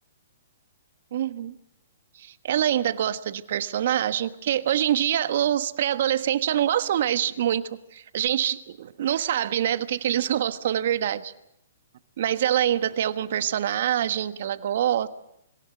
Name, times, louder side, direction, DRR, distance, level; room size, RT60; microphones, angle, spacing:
voice 1, 1.1-1.6 2.2-7.6 7.9-11.3 12.2-15.1, right 11 dB, 60° right, 12 dB, 1.4 m, -25 dB
26.0 x 17.0 x 7.8 m, 0.80 s
hypercardioid pair, 130°, 0 cm